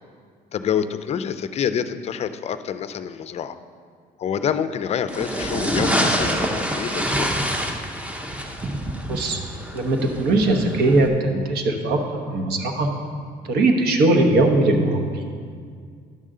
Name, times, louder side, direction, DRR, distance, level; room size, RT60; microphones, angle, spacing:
voice 1, 0.5-3.6 4.2-7.3, left 8 dB, 40° left, 12 dB, 0.4 m, -27 dB
sound 1, 5.1-11.1, equal, 10° right, 0.7 m, -26 dB
voice 2, 9.1-9.4 9.7-12.0 12.3-12.9 13.4-15.2, right 2 dB, 70° right, 4 dB, 1.1 m, -20 dB
10.5 x 6.5 x 3.7 m, 2.1 s
cardioid pair, 110°, 17 cm